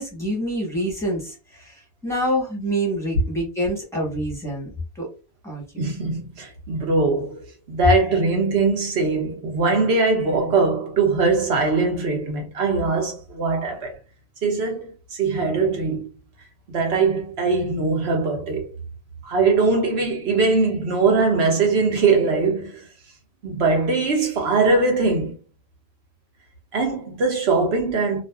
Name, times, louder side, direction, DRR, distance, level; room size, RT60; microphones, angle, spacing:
voice 1, 0.0-1.7 2.0-4.7 5.0-5.1 5.4-5.8, right 1 dB, 5° left, 1.1 m, -26 dB
voice 2, 5.8-14.0 14.4-16.1 16.7-18.7 19.2-22.8 23.4-25.3 26.7-28.2, right 3 dB, 70° right, 1.1 m, -21 dB
2.5 x 2.3 x 2.2 m
omnidirectional pair, 1.1 m